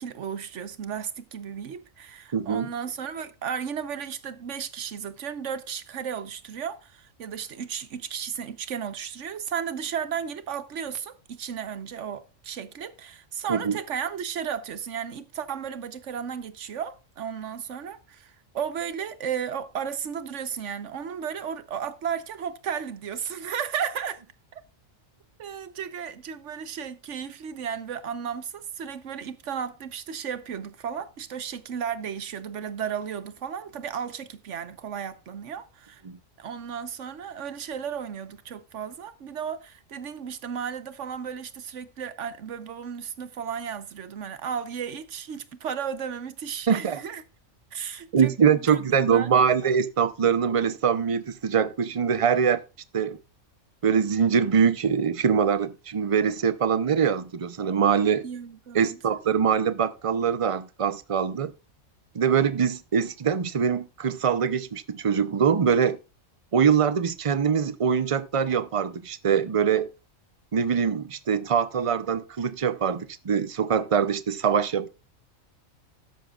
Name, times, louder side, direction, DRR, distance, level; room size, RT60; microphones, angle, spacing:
voice 1, 0.0-24.2 24.5-24.6 25.4-36.0 36.4-47.2 47.7-49.3 58.2-59.0, right 7 dB, 65° right, 1.2 m, -34 dB
voice 2, 2.3-2.7 13.5-13.8 36.0-36.2 46.7-47.0 48.1-52.6 52.9-53.2 53.8-58.2 58.7-61.5 62.1-66.0 66.5-69.9 70.5-74.9, right 7 dB, 35° right, 0.6 m, -23 dB
13.0 x 10.5 x 2.4 m
omnidirectional pair, 1.4 m